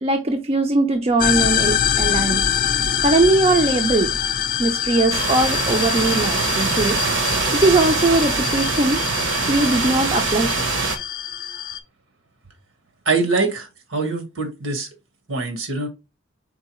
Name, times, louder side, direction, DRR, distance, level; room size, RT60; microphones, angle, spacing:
voice 1, 0.0-2.4 3.0-4.1 4.6-7.0 7.5-9.0 9.5-10.7, right 2 dB, 30° right, 0.4 m, -20 dB
sound 1, 1.2-11.8, left 9 dB, 40° left, 0.4 m, -24 dB
sound 2, 5.1-11.0, right 4 dB, 65° right, 0.9 m, -23 dB
voice 2, 13.0-14.9 15.3-15.9, right 3 dB, 80° right, 1.4 m, -23 dB
4.6 x 3.8 x 2.9 m
head